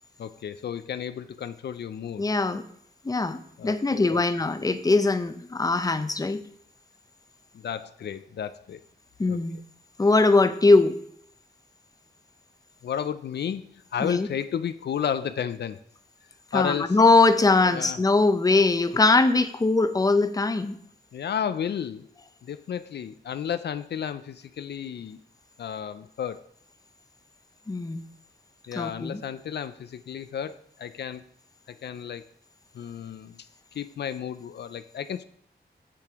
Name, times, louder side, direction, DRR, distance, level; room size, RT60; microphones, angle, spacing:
voice 1, 0.2-2.2 3.6-4.2 7.5-8.8 9.3-9.4 12.8-15.8 16.5-17.0 17.6-18.0 21.1-22.1 22.4-25.2 25.6-26.4 28.7-31.2 31.7-32.2 32.7-33.4 33.7-35.2, left 8 dB, 75° left, 11 dB, 0.4 m, -32 dB
voice 2, 2.2-2.6 3.0-6.4 9.2-9.6 10.0-11.0 14.0-14.3 16.5-20.8 27.7-28.0 28.8-29.2, left 3 dB, 20° left, 10 dB, 0.6 m, -21 dB
7.4 x 6.9 x 3.5 m, 0.66 s
cardioid pair, 75°, 18 cm